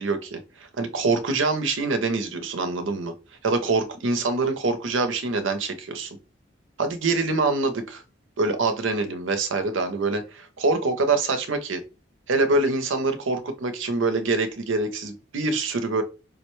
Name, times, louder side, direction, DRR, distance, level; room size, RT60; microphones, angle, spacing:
voice 1, 0.0-3.1 3.4-6.1 6.8-8.0 8.4-11.8 12.3-16.0, right 3 dB, 80° right, 8 dB, 0.6 m, -25 dB
4.8 x 2.1 x 3.0 m, 0.30 s
head